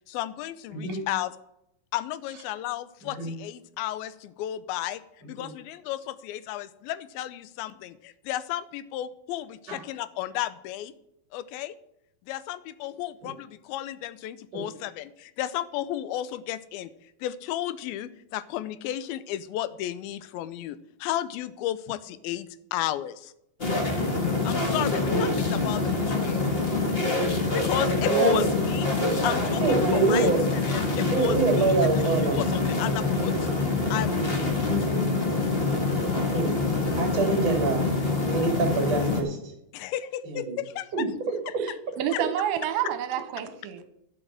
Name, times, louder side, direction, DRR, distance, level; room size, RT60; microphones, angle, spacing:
voice 1, 0.1-1.3 1.9-5.0 5.3-10.9 11.3-11.7 12.3-16.9 17.2-23.3 24.4-26.4 27.3-28.9 29.2-33.5 33.9-34.7 39.7-41.1 41.5-41.6 42.1-42.2, left 13 dB, 85° left, 2.5 m, -33 dB
voice 2, 0.7-1.0 3.2-3.3 5.4-5.5 9.7-9.8 13.2-13.3 14.5-14.6 25.1-25.3 27.8-28.5 29.6-30.4 31.1-32.4 34.7-35.0 36.3-36.5 37.0-37.9 38.3-39.4 40.2-40.6 40.9-41.1 41.5-41.6, right 4 dB, 45° right, 3.3 m, -26 dB
sound 1, 23.6-39.2, left 3 dB, 50° left, 0.6 m, -25 dB
voice 3, 41.6-43.8, right 10 dB, 80° right, 2.7 m, -29 dB
11.5 x 6.6 x 7.5 m
omnidirectional pair, 4.2 m